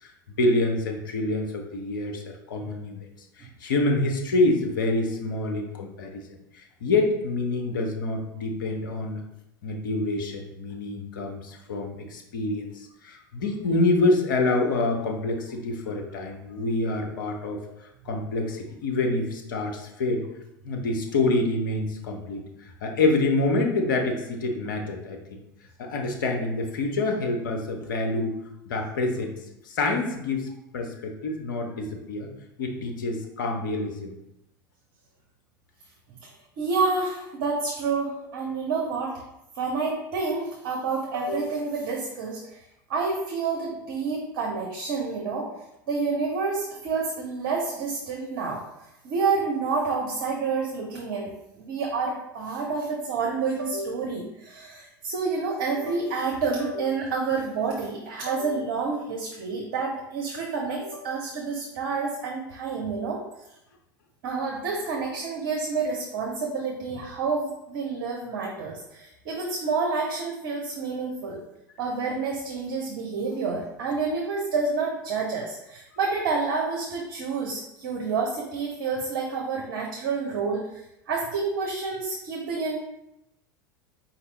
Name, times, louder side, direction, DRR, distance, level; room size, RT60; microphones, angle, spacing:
voice 1, 0.0-3.1 3.4-9.2 9.6-20.2 20.6-25.4 25.8-28.4 28.6-29.3 29.6-30.5 30.7-32.3 32.6-34.2, left 2 dB, 70° left, 2 dB, 0.9 m, -27 dB
voice 2, 36.6-39.2 39.6-42.6 42.9-45.5 45.9-48.6 49.0-51.3 51.6-63.2 64.2-71.4 71.8-82.8, right 4 dB, 60° right, -1 dB, 0.9 m, -29 dB
4.4 x 2.9 x 4.0 m, 0.85 s
figure-of-eight pair, 80°, 11 cm